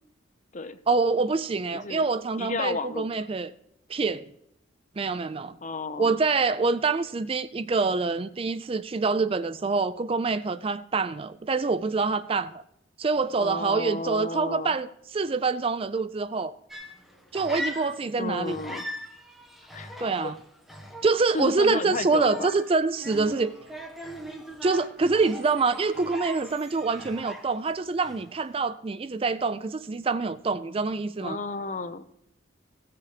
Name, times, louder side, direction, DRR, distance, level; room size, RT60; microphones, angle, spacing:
voice 1, 0.9-3.5 3.9-4.3 5.0-5.6 6.0-12.6 13.0-16.5 17.3-18.6 20.0-20.4 21.0-23.5 24.6-31.4, right 4 dB, 30° right, 0.3 m, -26 dB
voice 2, 1.7-2.0 2.4-3.1 5.6-6.2 13.4-14.7 18.2-18.9 19.7-20.3 21.3-22.5 31.2-32.1, left 3 dB, 40° left, 0.6 m, -32 dB
sound 1, 16.7-18.2 18.5-27.7 28.0-28.4, equal, ahead, 1.5 m, -40 dB
16.0 x 6.8 x 4.9 m
head